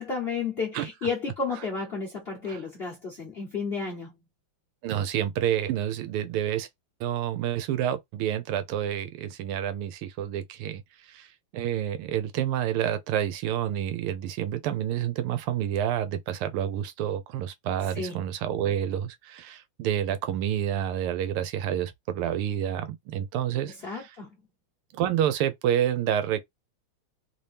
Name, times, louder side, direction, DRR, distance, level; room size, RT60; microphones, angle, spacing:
voice 1, 0.0-4.1 17.9-18.2 23.7-24.4, left 4 dB, 45° left, 0.8 m, -32 dB
voice 2, 4.8-6.7 7.0-11.3 11.5-24.1 24.9-26.4, right 10 dB, 85° right, 1.6 m, -29 dB
3.6 x 2.8 x 3.3 m
omnidirectional pair, 2.4 m